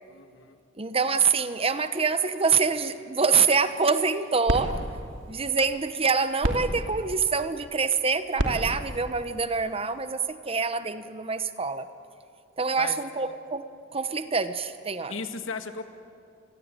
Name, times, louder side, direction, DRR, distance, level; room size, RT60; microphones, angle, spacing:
voice 1, 0.1-0.6 12.8-13.0 15.1-15.8, left 4 dB, 85° left, 7 dB, 1.9 m, -36 dB
voice 2, 0.8-4.8 5.3-11.9 12.6-13.6 13.9-15.1, right 5 dB, 30° right, 11 dB, 1.1 m, -25 dB
sound 1, 3.9-10.3, right 1 dB, 80° right, 2.9 m, -34 dB
29.0 x 22.0 x 9.2 m, 2.4 s
head